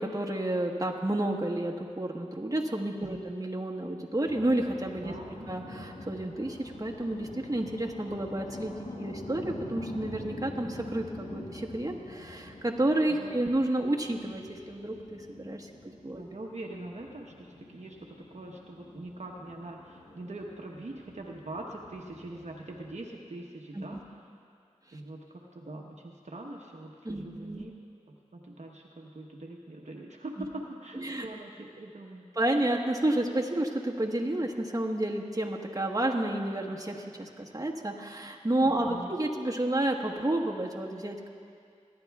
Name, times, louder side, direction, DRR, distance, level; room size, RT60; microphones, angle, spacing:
voice 1, 0.0-5.1 5.5-15.7 16.0-16.2 23.7-24.0 27.0-27.6 30.4-30.5 30.9-31.3 32.3-41.3, right 1 dB, 25° right, -1 dB, 1.3 m, -30 dB
sound 1, 4.2-23.1, left 2 dB, 70° left, 1.2 m, -46 dB
voice 2, 5.0-5.6 13.2-13.3 16.1-17.5 17.7-18.0 18.3-24.0 24.9-27.7 28.3-32.3 38.6-39.1, right 2 dB, 65° right, -1 dB, 1.0 m, -43 dB
24.0 x 10.5 x 2.4 m, 2.3 s
cardioid pair, 40°, 13 cm